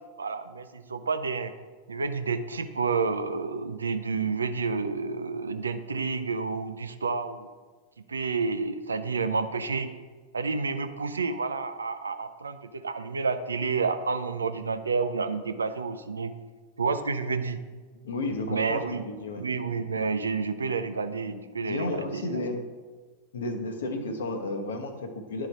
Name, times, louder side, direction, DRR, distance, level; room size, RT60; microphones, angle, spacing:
voice 1, 0.2-1.5 1.9-7.5 8.1-9.9 10.3-16.3 16.8-17.6 18.5-19.0 19.4-22.4, right 4 dB, 75° right, 10 dB, 0.5 m, -30 dB
voice 2, 18.0-19.4 21.7-22.6 23.3-25.5, left 2 dB, 65° left, 5 dB, 0.9 m, -32 dB
10.5 x 4.9 x 4.0 m, 1.4 s
figure-of-eight pair, 90°, 0 cm